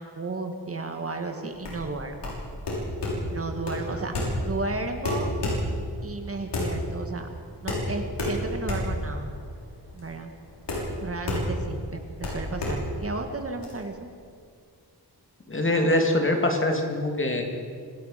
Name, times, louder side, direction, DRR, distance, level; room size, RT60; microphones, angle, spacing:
voice 1, 0.0-2.3 3.3-4.1 4.4-5.3 6.0-7.3 7.6-9.3 9.9-10.3 11.0-14.1, right 3 dB, 35° right, 5 dB, 1.8 m, -33 dB
sound 1, 1.5-13.7, left 1 dB, 90° left, 6.5 m, -30 dB
voice 2, 15.5-17.4, left 1 dB, 30° left, 2 dB, 2.8 m, -24 dB
26.0 x 18.0 x 5.8 m, 2.2 s
wide cardioid pair, 160°, 40 cm